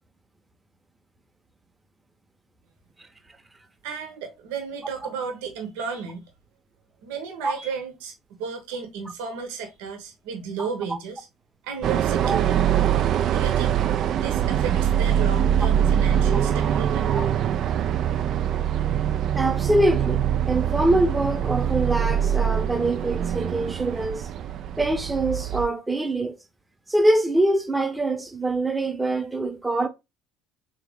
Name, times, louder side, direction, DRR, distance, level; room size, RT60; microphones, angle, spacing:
voice 1, 3.8-6.2 7.0-8.1 8.4-11.3 11.6-12.7 13.3-13.8 14.2-17.0, right 6 dB, 85° right, 0.9 m, -33 dB
sound 1, 11.8-25.7, right 9 dB, 55° right, 0.3 m, -23 dB
voice 2, 19.4-24.3 24.8-26.4 26.9-29.9, right 1 dB, 10° right, 0.8 m, -24 dB
3.6 x 2.9 x 3.5 m
supercardioid pair, 90°, 0 cm